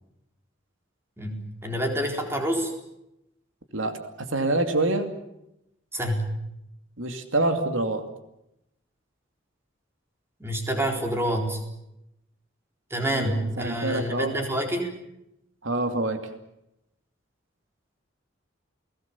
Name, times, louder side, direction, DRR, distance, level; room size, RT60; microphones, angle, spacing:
voice 1, 1.2-2.7 5.9-6.3 10.4-11.6 12.9-14.9, equal, 15° right, 3 dB, 4.1 m, -27 dB
voice 2, 3.7-5.1 7.0-8.0 13.1-14.3 15.6-16.2, right 2 dB, 80° right, 7 dB, 2.6 m, -26 dB
30.0 x 19.5 x 7.2 m, 0.85 s
head